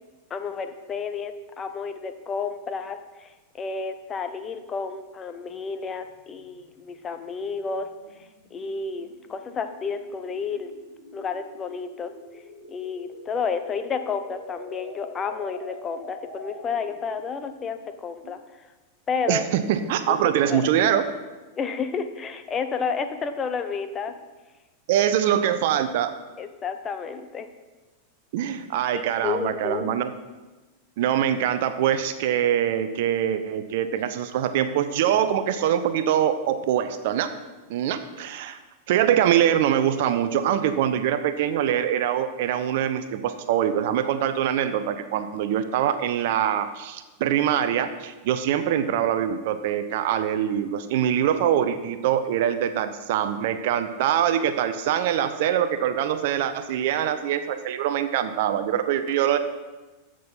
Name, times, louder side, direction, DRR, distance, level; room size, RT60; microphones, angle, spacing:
voice 1, 0.3-7.9 8.2-10.7 11.1-12.4 12.7-18.7 19.1-19.4 20.1-20.7 21.6-24.1 26.4-27.5 28.9-29.9, left 5 dB, 25° left, 9 dB, 0.8 m, -31 dB
sound 1, 5.7-17.0, left 2 dB, 60° left, 2.4 m, -45 dB
voice 2, 19.3-21.0 24.9-26.1 28.3-30.1 31.0-37.3 37.7-38.6 38.9-59.4, right 10 dB, 50° right, 10 dB, 0.7 m, -24 dB
15.0 x 6.3 x 4.3 m, 1.2 s
figure-of-eight pair, 90°, 0 cm